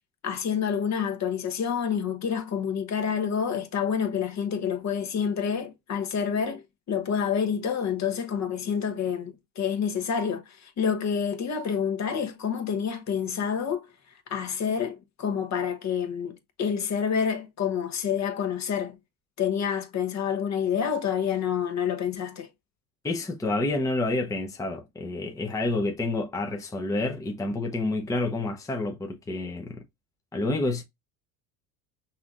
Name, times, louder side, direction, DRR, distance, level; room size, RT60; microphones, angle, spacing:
voice 1, 0.2-6.6 6.9-13.9 14.3-19.0 19.4-22.5, left 7 dB, 40° left, 1.0 m, -28 dB
voice 2, 23.0-29.8 30.3-30.8, left 2 dB, 10° left, 0.7 m, -29 dB
5.6 x 2.6 x 2.4 m
supercardioid pair, 90°, 44 cm